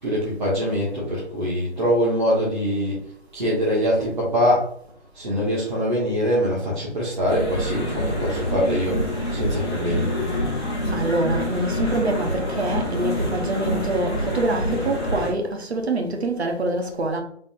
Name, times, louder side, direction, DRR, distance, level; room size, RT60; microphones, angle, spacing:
voice 1, 0.0-3.0 3.3-4.7 5.1-9.0 9.3-10.1, equal, 40° right, 1.2 m, -23 dB
sound 1, 7.3-15.3, equal, 20° left, 0.9 m, -26 dB
voice 2, 10.9-17.2, right 2 dB, 60° right, 0.9 m, -25 dB
3.8 x 3.6 x 2.5 m
hypercardioid pair, 175°, 35 cm